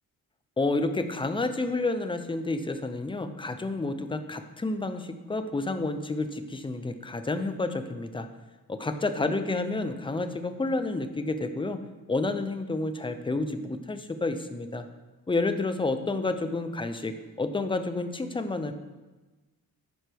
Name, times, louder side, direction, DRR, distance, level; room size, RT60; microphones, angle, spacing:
voice 1, 0.6-8.3 8.7-11.8 12.1-14.9 15.3-18.7, left 2 dB, 15° left, 9 dB, 0.5 m, -30 dB
10.5 x 9.0 x 3.4 m, 1.2 s
wide cardioid pair, 165°, 37 cm